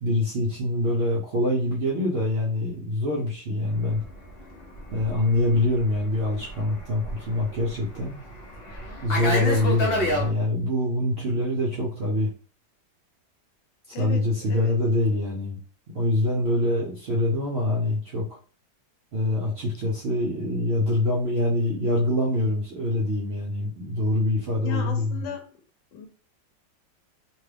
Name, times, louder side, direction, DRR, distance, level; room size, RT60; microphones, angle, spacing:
voice 1, 0.0-4.0 4.9-8.1 9.0-12.3 14.0-15.6 15.9-18.4 19.1-25.2, left 1 dB, 65° right, 0.6 m, -25 dB
Fixed-wing aircraft airplane, 3.8-10.3, left 1 dB, 50° left, 0.7 m, -31 dB
voice 2, 24.6-25.5 25.9-26.1, left 7 dB, 85° left, 1.3 m, -36 dB
3.0 x 2.3 x 3.3 m
omnidirectional pair, 1.9 m